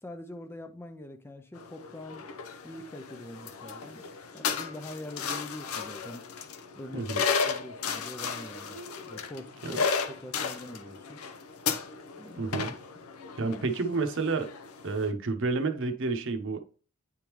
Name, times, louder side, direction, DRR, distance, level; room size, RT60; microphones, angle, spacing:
voice 1, 0.0-2.3 2.6-4.1 4.3-6.3 6.7-7.1 7.4-8.8 9.0-9.8 10.1-11.2 12.2-12.5 13.6-13.7, left 1 dB, 10° left, 0.4 m, -44 dB
sound 1, 1.6-15.1, left 5 dB, 80° left, 0.7 m, -34 dB
voice 2, 12.4-12.7 13.4-14.5 14.8-16.6, right 3 dB, 60° right, 0.8 m, -30 dB
8.9 x 3.5 x 3.0 m
head